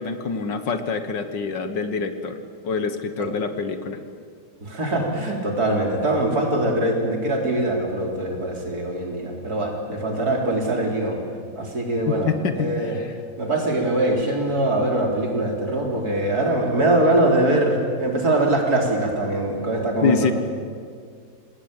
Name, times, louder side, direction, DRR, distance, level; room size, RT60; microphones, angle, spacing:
voice 1, 0.0-2.4 2.6-4.0 12.1-12.7 20.0-20.3, left 5 dB, 70° left, 9 dB, 2.1 m, -25 dB
voice 2, 4.6-11.2 11.5-13.0 13.4-20.3, right 1 dB, 50° right, 0 dB, 4.4 m, -22 dB
27.0 x 19.5 x 9.0 m, 2.1 s
omnidirectional pair, 2.0 m